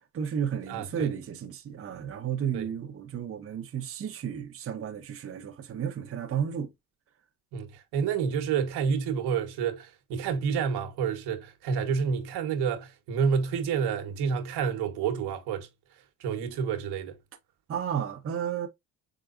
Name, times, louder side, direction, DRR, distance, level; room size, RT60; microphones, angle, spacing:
voice 1, 0.1-6.7 17.7-18.7, right 8 dB, 35° right, 0.9 m, -32 dB
voice 2, 0.7-1.1 2.5-2.7 7.5-15.7 16.2-17.1, right 6 dB, 70° right, 1.3 m, -29 dB
4.9 x 3.8 x 2.5 m
cardioid pair, 110°, 40 cm